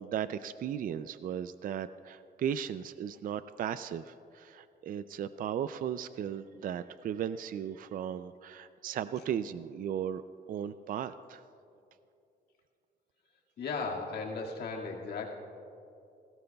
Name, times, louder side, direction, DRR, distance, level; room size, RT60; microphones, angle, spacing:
voice 1, 0.0-10.2 10.5-11.4, right 9 dB, 55° right, 13 dB, 0.4 m, -36 dB
voice 2, 13.6-15.3, left 4 dB, 70° left, -1 dB, 2.1 m, -36 dB
20.0 x 17.0 x 2.3 m, 2.6 s
cardioid pair, 120°, 18 cm